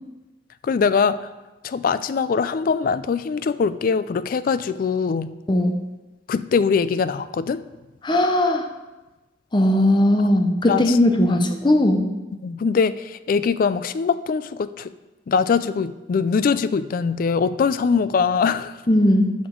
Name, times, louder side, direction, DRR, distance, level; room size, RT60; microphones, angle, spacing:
voice 1, 0.6-1.3 1.6-5.3 6.3-7.6 10.7-11.0 12.4-14.9 15.3-18.8, left 5 dB, 50° left, 14 dB, 0.3 m, -22 dB
voice 2, 8.0-8.6 9.5-12.1 18.9-19.3, left 1 dB, 25° left, 5 dB, 0.7 m, -18 dB
12.0 x 5.2 x 3.7 m, 1.1 s
head